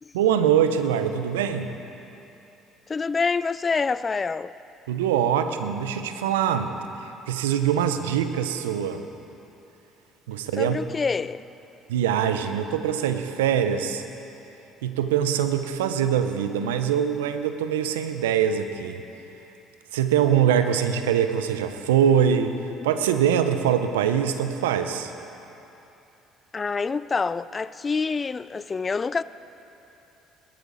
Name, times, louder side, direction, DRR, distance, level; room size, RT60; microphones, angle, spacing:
voice 1, 0.1-1.8 4.9-6.7 7.3-9.0 10.3-10.8 11.9-14.0 14.8-19.0 19.9-22.6 22.8-25.1, right 9 dB, 85° right, 0.7 m, -23 dB
voice 2, 2.9-4.5 10.6-11.4 26.5-29.2, left 4 dB, 30° left, 0.4 m, -26 dB
18.5 x 13.0 x 4.1 m
hypercardioid pair, 60°, 0 cm